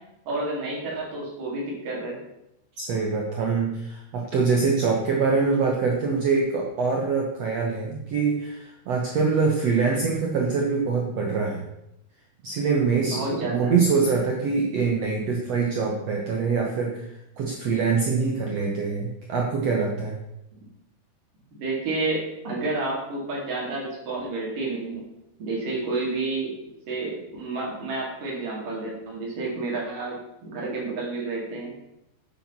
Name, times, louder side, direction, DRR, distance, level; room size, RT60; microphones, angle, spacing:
voice 1, 0.3-2.2 13.0-13.7 21.5-25.0 25.4-26.5 26.9-31.7, right 3 dB, 55° right, -3 dB, 4.8 m, -30 dB
voice 2, 2.8-11.6 12.4-17.1 17.4-20.2, right 4 dB, 75° right, 0 dB, 1.5 m, -24 dB
9.0 x 8.7 x 6.1 m, 0.85 s
omnidirectional pair, 4.8 m